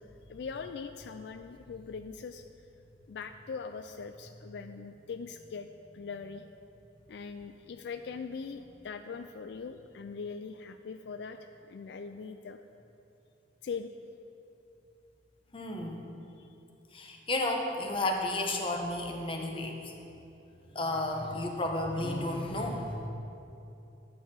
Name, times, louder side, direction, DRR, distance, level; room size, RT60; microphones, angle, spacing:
voice 1, 0.0-2.4 3.1-5.7 5.9-6.4 7.1-12.6 13.6-13.9 16.4-16.6, left 5 dB, 70° left, 8 dB, 0.3 m, -41 dB
voice 2, 15.5-16.2 16.9-19.9 20.7-23.1, left 2 dB, 30° left, 2 dB, 1.0 m, -32 dB
11.0 x 4.7 x 7.4 m, 2.8 s
head